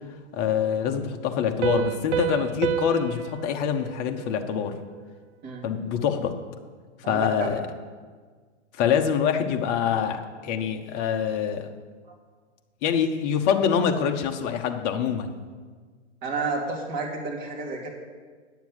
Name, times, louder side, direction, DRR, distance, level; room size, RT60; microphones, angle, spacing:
voice 1, 0.3-4.7 5.6-6.3 7.1-7.6 8.7-11.7 12.8-15.4, left 8 dB, 35° left, 5 dB, 1.0 m, -25 dB
Piano, 1.6-5.0, right 10 dB, 75° right, 0.7 m, -30 dB
voice 2, 16.2-17.9, right 3 dB, 25° right, -2 dB, 2.6 m, -30 dB
9.7 x 7.1 x 7.9 m, 1.5 s
hypercardioid pair, 135°, 36 cm